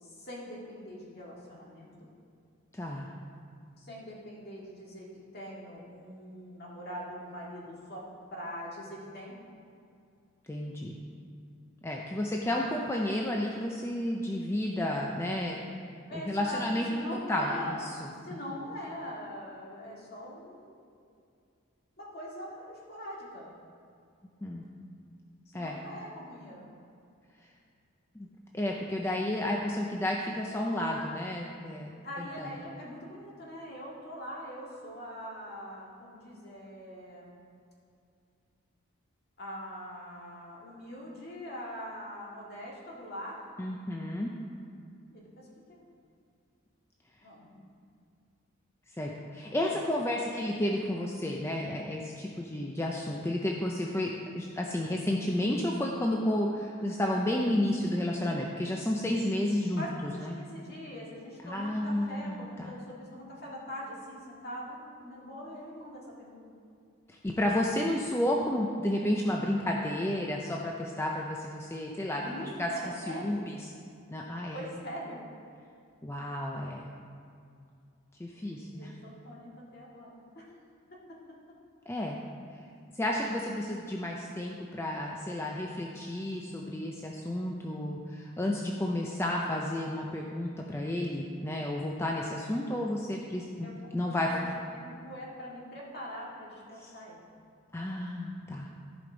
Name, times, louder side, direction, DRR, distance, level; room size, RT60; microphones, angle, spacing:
voice 1, 0.0-1.9 3.8-5.1 5.3-9.3 16.1-16.7 16.9-17.8 18.2-21.0 22.0-23.6 25.5-26.7 32.0-37.4 39.4-43.4 45.1-45.8 47.2-47.7 49.4-49.6 50.1-50.2 59.8-66.4 72.1-73.5 74.5-75.2 78.3-80.6 81.1-81.2 93.6-93.7 94.7-97.2, equal, 50° left, -4 dB, 1.9 m, -43 dB
voice 2, 2.7-3.1 10.5-11.0 11.8-15.6 16.2-17.0 17.3-17.9 18.3-18.4 24.4-24.6 25.5-25.8 28.2-28.3 28.5-31.9 32.2-32.5 43.6-44.3 49.0-60.4 61.4-62.7 67.1-72.7 73.0-73.7 74.1-74.6 76.0-76.9 78.2-78.9 81.9-82.2 83.0-94.6 96.8-96.9 97.7-98.7, left 1 dB, 10° left, -1 dB, 0.4 m, -31 dB
14.0 x 5.2 x 3.9 m, 2.4 s
head